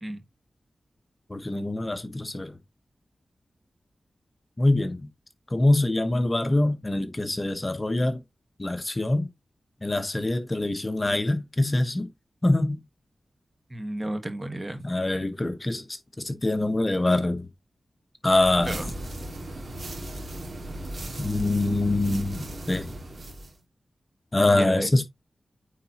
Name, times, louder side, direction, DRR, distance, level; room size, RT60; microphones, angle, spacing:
voice 1, 1.3-2.5 4.6-5.1 5.5-8.2 8.6-9.3 9.8-12.1 12.4-12.8 14.8-15.8 16.2-17.5 18.2-18.8 21.2-22.9 24.3-25.0, left 2 dB, 30° left, 1.0 m, -24 dB
voice 2, 13.7-14.8 18.6-18.9 24.5-25.0, right 1 dB, 25° right, 1.4 m, -32 dB
sound 1, 18.3-23.6, right 1 dB, 60° right, 2.2 m, -37 dB
9.0 x 4.0 x 2.9 m
cardioid pair, 55°, 0 cm